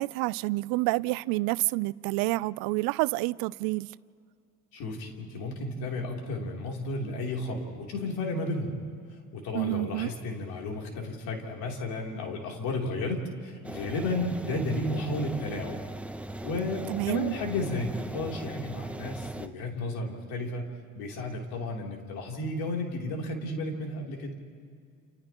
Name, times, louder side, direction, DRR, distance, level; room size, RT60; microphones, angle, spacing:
voice 1, 0.0-3.9 9.5-10.1 16.9-17.3, right 21 dB, 75° right, 0.5 m, -28 dB
voice 2, 4.7-8.7 9.3-15.8 16.4-20.7 20.9-24.3, left 2 dB, 75° left, 3.3 m, -33 dB
sound 1, 13.6-19.5, right 1 dB, 5° right, 0.9 m, -39 dB
30.0 x 29.0 x 3.0 m
supercardioid pair, 70°, 36 cm